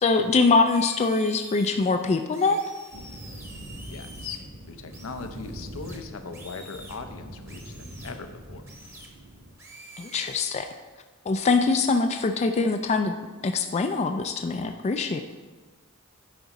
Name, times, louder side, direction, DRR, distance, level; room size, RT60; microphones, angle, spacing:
voice 1, 0.0-2.6 10.0-10.7 11.3-13.1 13.4-15.2, left 4 dB, 30° left, 6 dB, 0.3 m, -23 dB
sound 1, 0.7-1.7 2.3-4.4 4.9-7.0 7.5-8.1 8.7-9.1 9.6-10.5, right 1 dB, 15° right, 0.9 m, -47 dB
sound 2, 2.9-9.5, equal, 65° right, 1.6 m, -43 dB
voice 2, 3.9-8.6, left 4 dB, 80° left, 7 dB, 0.7 m, -39 dB
9.3 x 4.9 x 4.1 m, 1.3 s
head